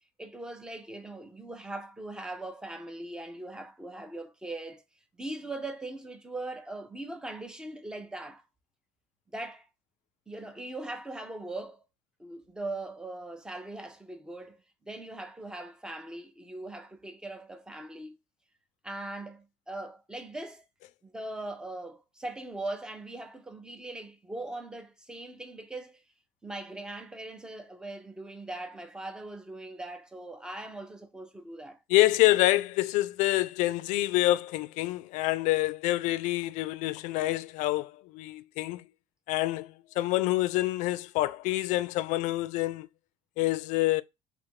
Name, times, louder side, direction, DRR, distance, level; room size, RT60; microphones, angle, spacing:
voice 1, 0.2-4.8 5.2-8.4 9.3-9.7 10.3-11.8 12.2-14.6 14.8-18.2 18.8-20.7 21.0-26.0 26.4-31.8, right 2 dB, 5° right, 0.5 m, -40 dB
voice 2, 31.9-38.8 39.3-42.9 43.4-44.0, left 17 dB, 75° left, 0.4 m, -27 dB
3.4 x 2.5 x 4.5 m
cardioid pair, 155°, 13 cm